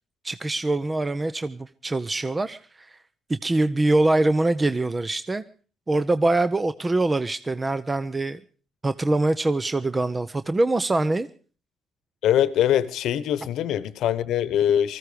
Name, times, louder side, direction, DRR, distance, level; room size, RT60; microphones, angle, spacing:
voice 1, 0.2-2.9 3.3-5.4 5.9-8.4 8.8-11.3, right 2 dB, 25° right, 0.8 m, -24 dB
voice 2, 12.2-15.0, left 10 dB, 75° left, 1.1 m, -23 dB
19.5 x 14.5 x 5.1 m
supercardioid pair, 75°, 0 cm